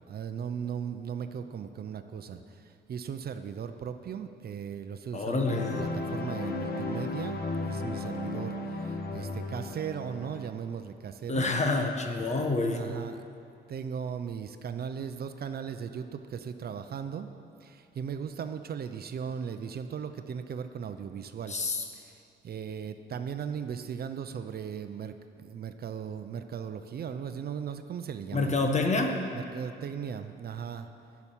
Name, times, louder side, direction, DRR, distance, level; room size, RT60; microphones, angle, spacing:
voice 1, 0.1-11.4 12.6-13.2 13.7-17.3 17.6-21.6 21.9-28.6 29.3-30.9, right 7 dB, 50° right, 9 dB, 0.7 m, -37 dB
voice 2, 5.1-5.8 11.3-12.8 21.5-21.8 28.3-29.2, left 3 dB, 35° left, 4 dB, 1.4 m, -27 dB
sound 1, 5.4-10.4, left 2 dB, 50° left, 1.2 m, -35 dB
10.5 x 7.2 x 9.0 m, 2.5 s
cardioid pair, 90°, 20 cm